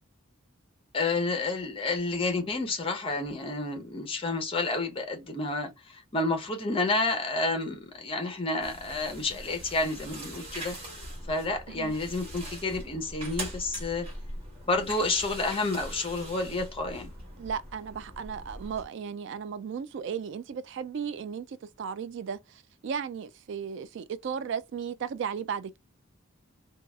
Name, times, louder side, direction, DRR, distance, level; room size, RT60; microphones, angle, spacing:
voice 1, 0.9-10.8 11.3-14.1 14.7-17.1, left 3 dB, 25° left, 0.8 m, -30 dB
sound 1, 8.6-18.8, right 1 dB, 30° right, 1.5 m, -42 dB
voice 2, 17.4-25.8, right 7 dB, 55° right, 0.3 m, -35 dB
3.9 x 2.4 x 2.3 m
head